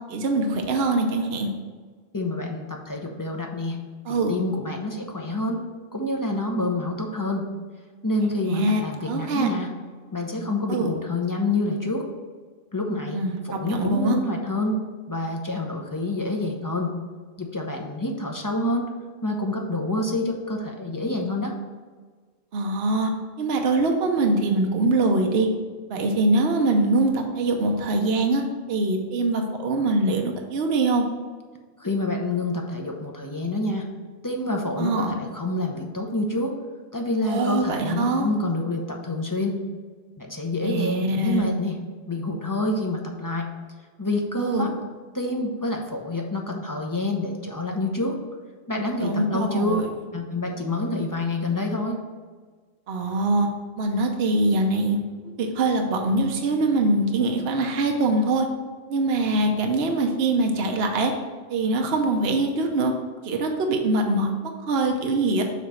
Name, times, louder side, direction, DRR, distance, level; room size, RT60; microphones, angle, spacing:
voice 1, 0.1-1.5 4.1-4.3 8.4-9.5 10.7-10.9 13.1-13.4 13.7-14.2 22.5-23.1 23.4-25.5 25.9-28.4 28.7-31.0 34.8-35.1 37.2-38.3 40.6-41.4 44.4-44.6 49.0-49.9 52.9-53.5 53.8-55.0 55.4-58.5 58.9-61.1 61.5-62.9 63.2-65.4, right 2 dB, 60° right, 3 dB, 0.9 m, -23 dB
voice 2, 2.1-3.8 4.1-5.6 5.9-7.5 8.0-9.7 10.1-12.0 12.7-14.8 15.1-16.9 17.4-18.8 19.2-21.5 31.8-33.9 34.2-36.6 36.9-39.6 40.2-41.8 42.1-43.5 44.0-44.7 45.1-48.2 48.7-49.8 50.1-52.0, left 2 dB, 20° left, 1 dB, 0.6 m, -27 dB
7.2 x 3.1 x 6.1 m, 1.5 s
omnidirectional pair, 1.2 m